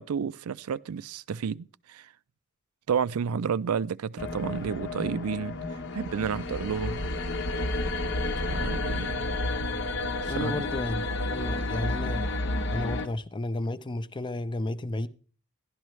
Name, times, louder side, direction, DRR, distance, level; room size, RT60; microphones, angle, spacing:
voice 1, 0.0-2.1 2.9-7.0 8.4-9.3 10.2-10.6, right 7 dB, 80° right, 0.4 m, -31 dB
sound 1, 4.2-13.1, left 2 dB, 55° left, 0.9 m, -31 dB
voice 2, 10.3-12.2 12.7-15.1, left 2 dB, 20° left, 0.5 m, -32 dB
12.0 x 11.5 x 3.1 m
head